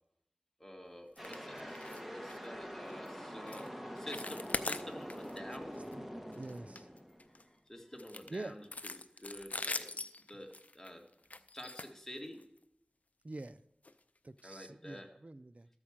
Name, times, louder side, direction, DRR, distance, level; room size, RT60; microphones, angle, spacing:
voice 1, 0.6-5.8 7.3-10.0 10.3-11.0 11.5-12.4 14.4-15.1, equal, 10° left, 2 dB, 1.8 m, -49 dB
sound 1, 1.2-1.4 1.7-2.0 2.3-2.5 2.9-3.1 3.5-3.7 4.0-5.4 5.7-5.9 6.3-7.4 8.0-12.6 13.3-13.5 13.8-13.9 14.4-14.5, left 2 dB, 55° left, 0.5 m, -42 dB
sound 2, 1.2-7.5, equal, 5° right, 1.3 m, -45 dB
voice 2, 5.9-6.9 8.3-8.5 13.2-13.6 14.2-15.7, right 2 dB, 50° right, 14 dB, 0.5 m, -46 dB
13.0 x 4.9 x 7.3 m, 0.81 s
wide cardioid pair, 40°, 3 cm